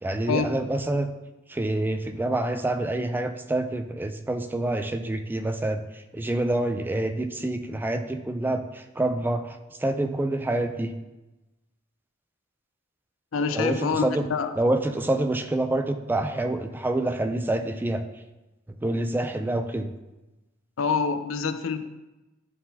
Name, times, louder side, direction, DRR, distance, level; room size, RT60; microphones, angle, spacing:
voice 1, 0.0-1.1 1.5-10.9 13.5-14.2 14.6-18.0 18.8-19.9, right 1 dB, 10° right, 7 dB, 0.3 m, -27 dB
voice 2, 13.3-14.5 20.8-21.9, left 5 dB, 75° left, 10 dB, 0.5 m, -26 dB
10.5 x 3.8 x 2.8 m, 1.0 s
head